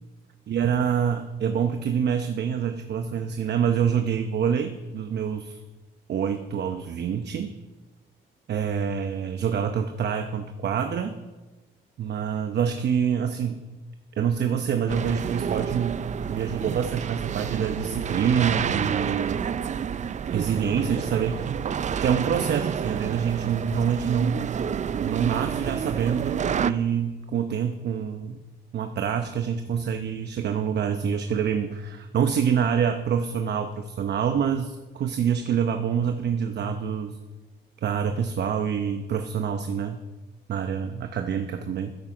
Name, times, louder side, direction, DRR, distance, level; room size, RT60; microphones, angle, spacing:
voice 1, 0.5-5.6 6.1-7.6 8.5-11.2 12.0-13.6 14.2-19.5 20.3-21.5 22.0-24.5 25.0-28.4 28.7-37.2 37.8-40.0 40.5-41.9, right 7 dB, 60° right, 7 dB, 0.9 m, -26 dB
sound 1, 14.9-26.7, right 7 dB, 35° right, 0.4 m, -29 dB
13.0 x 9.7 x 5.0 m, 1.2 s
cardioid pair, 90°, 20 cm